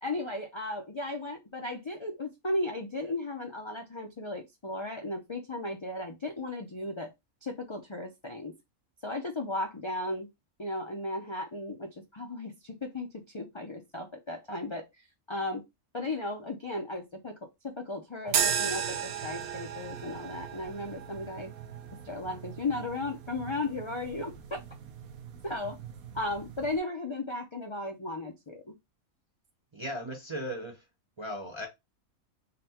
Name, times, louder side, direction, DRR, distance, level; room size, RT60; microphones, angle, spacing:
voice 1, 0.0-7.1 7.4-8.6 9.0-10.3 10.6-14.9 15.3-15.6 15.9-21.5 22.0-24.6 25.4-25.8 26.1-28.8, left 2 dB, 50° left, 0.3 m, -35 dB
sound 1, 18.3-26.8, right 8 dB, 80° right, 1.1 m, -36 dB
voice 2, 29.7-30.8 31.2-31.7, equal, 30° right, 0.5 m, -37 dB
4.0 x 2.2 x 4.1 m
omnidirectional pair, 1.5 m